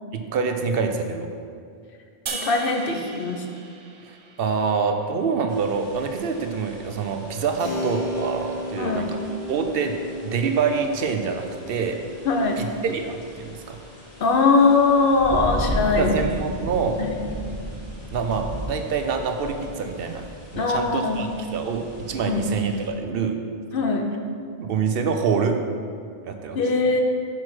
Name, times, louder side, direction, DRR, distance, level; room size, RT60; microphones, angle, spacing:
voice 1, 0.1-1.3 4.4-9.1 9.5-10.0 10.2-12.0 12.6-13.8 15.9-17.0 18.1-20.2 20.5-23.3 24.6-25.6 26.2-26.6, right 5 dB, 70° right, 5 dB, 0.8 m, -26 dB
sound 1, 2.3-5.5, right 4 dB, 50° right, 0.3 m, -38 dB
voice 2, 2.4-3.4 8.8-9.1 12.2-12.6 14.2-16.1 16.5-16.6 17.0-17.2 20.6-21.2 22.2-22.5 23.7-24.0 26.5-27.0, left 4 dB, 65° left, 3 dB, 0.9 m, -21 dB
sound 2, 5.5-22.9, equal, 90° left, 2.1 m, -36 dB
Keyboard (musical), 7.6-16.0, equal, 30° right, 2.1 m, -36 dB
5.9 x 4.8 x 5.9 m, 2.3 s
omnidirectional pair, 1.0 m